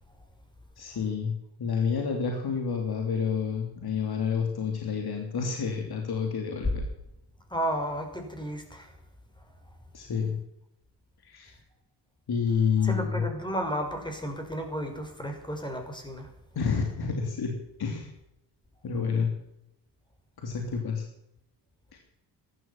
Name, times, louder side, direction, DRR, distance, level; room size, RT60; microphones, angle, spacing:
voice 1, 0.8-1.3 1.6-6.8 9.9-10.4 11.2-11.6 12.3-13.2 16.5-17.5 17.8-18.1 18.8-19.3 20.4-21.0 21.9-22.0, left 6 dB, 55° left, 3 dB, 3.2 m, -29 dB
voice 2, 7.5-8.9 12.8-16.3, equal, 10° left, 4 dB, 6.2 m, -33 dB
14.5 x 12.5 x 7.3 m, 0.82 s
supercardioid pair, 60°, 45 cm